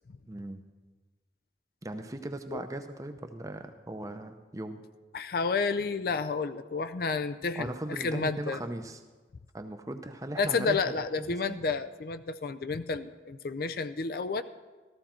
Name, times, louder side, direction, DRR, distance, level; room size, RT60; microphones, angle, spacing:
voice 1, 0.3-0.6 1.8-4.8 7.6-9.0 9.5-10.8 11.2-11.6, right 1 dB, 20° right, 7 dB, 0.6 m, -38 dB
voice 2, 5.1-8.6 10.4-14.4, left 4 dB, 55° left, 11 dB, 0.4 m, -31 dB
14.0 x 14.0 x 4.4 m, 1.3 s
head